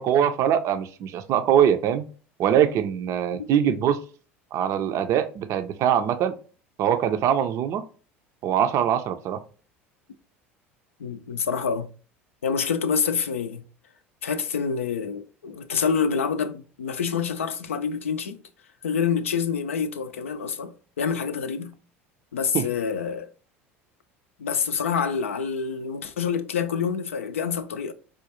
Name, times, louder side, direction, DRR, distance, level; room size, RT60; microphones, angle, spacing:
voice 1, 0.0-2.0 2.4-4.0 4.5-6.3 6.8-7.8 8.4-9.4 22.5-22.7, right 9 dB, 45° right, 0.4 m, -22 dB
voice 2, 11.0-11.9 12.4-13.6 14.2-18.4 18.8-21.8 22.3-23.3 24.4-27.9, left 6 dB, 80° left, 0.4 m, -27 dB
4.9 x 2.2 x 2.9 m
figure-of-eight pair, 70°, 7 cm